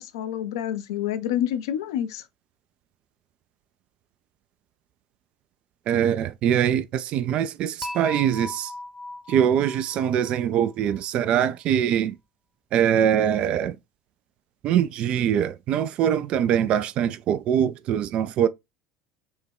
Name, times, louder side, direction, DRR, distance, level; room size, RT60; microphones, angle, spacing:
voice 1, 0.0-2.2, left 10 dB, 70° left, 0.5 m, -28 dB
voice 2, 5.9-8.7 9.3-12.2 12.7-13.8 14.6-18.5, right 9 dB, 50° right, 0.3 m, -23 dB
Dishes pots and pans / Chink clink, 7.8-11.0, left 2 dB, 15° left, 0.7 m, -38 dB
4.3 x 2.2 x 3.5 m
hypercardioid pair, 70°, 2 cm